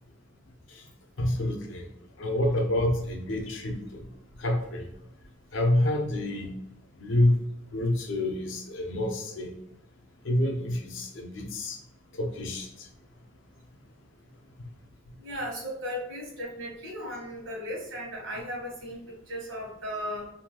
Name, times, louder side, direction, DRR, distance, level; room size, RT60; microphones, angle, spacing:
voice 1, 1.2-1.9 2.2-4.0 4.4-4.9 5.5-6.5 7.0-7.4 7.7-9.5 10.2-11.8 12.2-12.7 14.6-14.7, left 1 dB, 70° left, 3 dB, 0.5 m, -27 dB
voice 2, 15.2-20.3, equal, 80° right, -1 dB, 1.0 m, -36 dB
2.6 x 2.2 x 2.9 m, 0.81 s
head